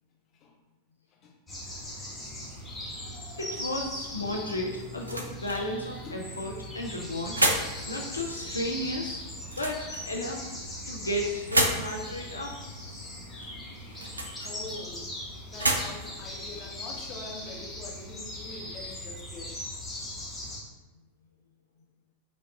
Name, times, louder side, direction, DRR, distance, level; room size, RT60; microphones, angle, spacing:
sound 1, 1.5-20.6, left 1 dB, 10° left, 1.1 m, -40 dB
voice 1, 2.8-3.6 4.2-4.7 6.0-6.3 8.5-9.2 14.4-15.1 15.5-19.6, left 3 dB, 35° left, -1 dB, 0.8 m, -45 dB
voice 2, 3.4-7.4 7.9-9.2 9.5-10.6 10.9-12.6, left 1 dB, 80° left, 0 dB, 0.4 m, -33 dB
sound 2, 4.5-17.7, right 1 dB, 80° right, 0.5 m, -34 dB
4.7 x 2.3 x 3.6 m, 1.2 s
figure-of-eight pair, 90°, 0 cm